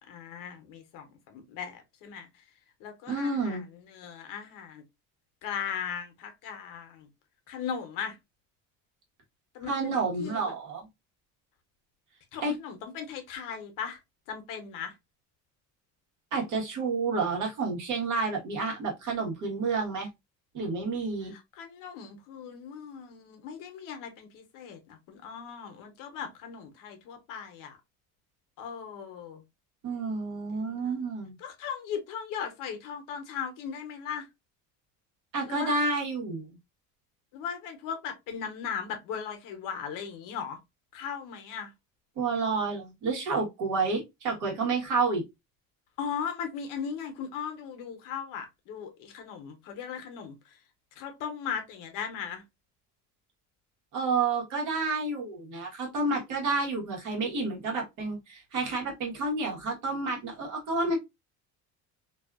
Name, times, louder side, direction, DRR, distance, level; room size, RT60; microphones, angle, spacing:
voice 1, 0.1-2.3 2.8-4.8 5.4-7.1 7.5-8.2 9.5-10.4 12.3-14.0 14.3-14.9 21.2-27.8 28.6-29.4 30.5-31.0 31.4-34.3 35.5-35.7 37.3-40.6 40.9-41.7 46.0-50.6 51.0-52.4, left 7 dB, 60° left, 0.8 m, -38 dB
voice 2, 3.1-3.6 9.7-10.8 12.4-12.5 16.3-20.1 20.5-21.3 29.8-31.4 35.3-36.6 42.2-45.2 53.9-61.0, right 3 dB, 55° right, 1.3 m, -30 dB
2.6 x 2.4 x 2.3 m
cardioid pair, 165°, 36 cm